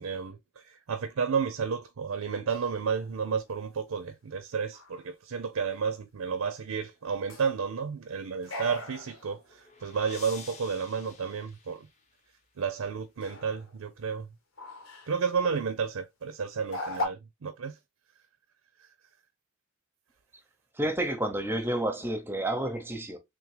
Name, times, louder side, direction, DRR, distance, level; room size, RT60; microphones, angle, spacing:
voice 1, 0.0-11.9 12.6-14.3 15.1-17.8, right 6 dB, 85° right, 0.5 m, -32 dB
sound 1, 2.5-3.6 4.7-5.1 7.0-7.6 8.4-9.5 10.0-10.5 11.1-11.3 13.2-13.9 14.6-15.3 15.6-15.8 16.6-17.0, left 1 dB, 75° left, 1.2 m, -40 dB
sound 2, 9.2-12.4, left 5 dB, 35° left, 0.8 m, -50 dB
voice 2, 20.8-23.2, right 1 dB, 10° right, 0.7 m, -30 dB
3.6 x 3.2 x 3.2 m
head